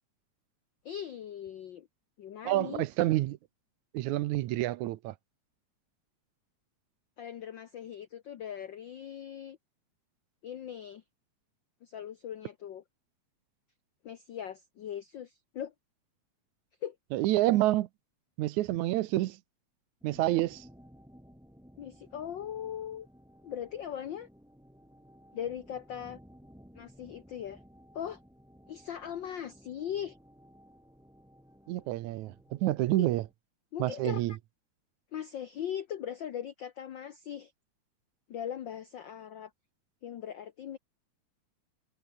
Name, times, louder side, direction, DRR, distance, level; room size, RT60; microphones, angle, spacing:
voice 1, 0.8-1.9 2.2-2.8 7.2-9.6 10.4-11.0 11.8-12.8 14.0-15.7 16.8-17.0 21.8-23.1 23.4-24.3 25.3-26.2 26.7-27.6 27.9-28.2 28.7-30.2 33.7-34.2 35.1-37.5 38.3-39.5 40.0-40.8, left 9 dB, 75° left, 1.0 m, -39 dB
voice 2, 2.4-3.4 3.9-5.1 17.1-17.9 18.4-19.4 20.0-20.7 31.7-33.2 33.8-34.3, right 16 dB, 80° right, 2.2 m, -28 dB
sound 1, 20.0-33.3, equal, ahead, 3.6 m, -57 dB
omnidirectional pair, 3.3 m